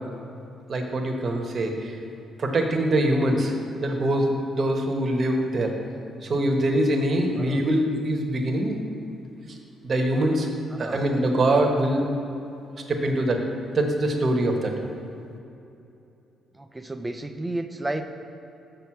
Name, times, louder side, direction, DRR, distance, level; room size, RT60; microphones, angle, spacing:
voice 1, 0.7-1.9 2.4-3.5 3.8-5.7 6.2-8.8 9.8-10.5 10.8-12.1 12.9-13.4 13.7-14.7, right 1 dB, 40° right, 2 dB, 1.1 m, -23 dB
voice 2, 10.7-11.0 16.5-18.0, right 2 dB, 15° right, 7 dB, 0.5 m, -32 dB
6.8 x 6.2 x 5.8 m, 2.8 s
cardioid pair, 90°, 0 cm